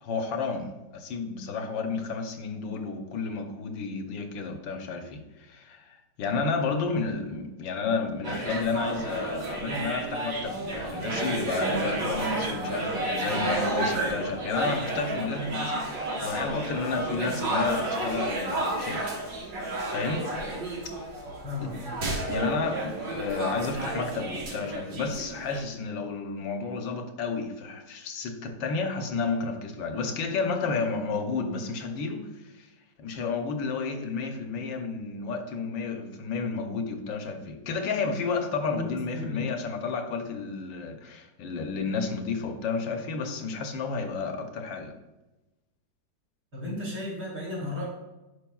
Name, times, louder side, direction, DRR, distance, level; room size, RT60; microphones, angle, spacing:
voice 1, 0.0-19.1 19.9-20.3 21.6-21.7 22.3-32.7 33.0-44.9, left 4 dB, 80° left, 5 dB, 1.5 m, -31 dB
sound 1, 8.2-25.6, right 2 dB, 75° right, 2.1 m, -31 dB
voice 2, 21.4-21.9 38.7-39.5 46.5-47.9, left 2 dB, 60° right, -5 dB, 3.2 m, -34 dB
10.5 x 4.8 x 2.3 m, 1.0 s
omnidirectional pair, 2.0 m